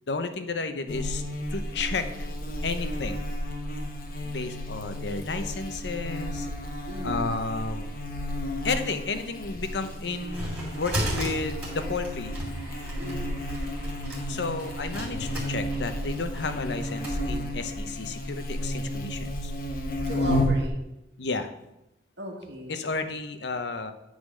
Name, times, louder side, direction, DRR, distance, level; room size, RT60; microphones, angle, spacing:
voice 1, 0.1-1.2 1.5-2.1 2.6-3.2 4.2-6.5 7.0-7.9 8.6-12.3 14.3-19.5 21.2-21.5 22.7-23.9, left 4 dB, 80° left, 9 dB, 0.7 m, -32 dB
Buzz, 0.9-20.7, equal, 55° left, 1.0 m, -32 dB
voice 2, 6.9-7.4 13.0-13.4 20.1-20.7 22.2-22.8, equal, 85° right, -1 dB, 1.9 m, -36 dB
sound 1, 9.8-17.2, right 1 dB, 10° right, 3.0 m, -36 dB
9.6 x 4.0 x 6.2 m, 0.91 s
head